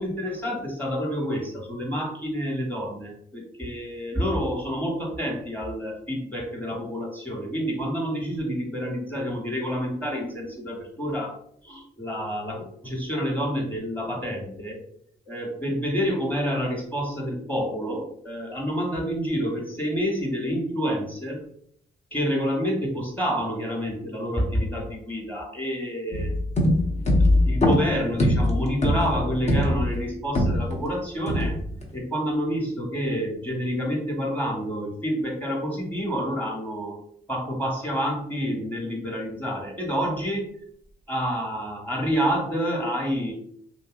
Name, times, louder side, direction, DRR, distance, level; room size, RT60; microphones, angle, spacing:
voice 1, 0.0-11.4 11.6-14.8 15.3-21.4 22.1-26.3 26.9-31.5 31.9-37.0 37.3-40.4 41.1-43.3, equal, 10° left, 0 dB, 1.3 m, -28 dB
sound 1, 26.1-30.9 31.3-31.8, left 1 dB, 35° left, 0.8 m, -22 dB
2.8 x 2.6 x 2.5 m, 0.66 s
supercardioid pair, 50°, 20 cm